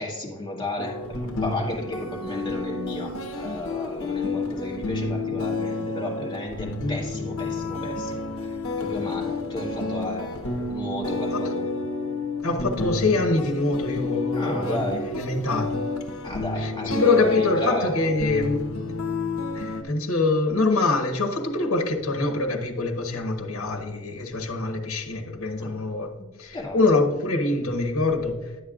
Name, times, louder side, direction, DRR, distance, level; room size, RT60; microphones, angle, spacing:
voice 1, 0.0-11.7 14.3-15.1 16.2-17.9 25.6-25.8 26.5-26.8, left 2 dB, 20° left, -1 dB, 1.7 m, -33 dB
sound 1, 0.8-19.8, left 2 dB, 85° left, 1.0 m, -30 dB
voice 2, 12.4-14.8 15.1-15.7 16.6-18.6 19.5-26.1 26.4-28.4, left 3 dB, 70° left, 3 dB, 1.2 m, -24 dB
11.0 x 8.3 x 2.4 m, 1.2 s
head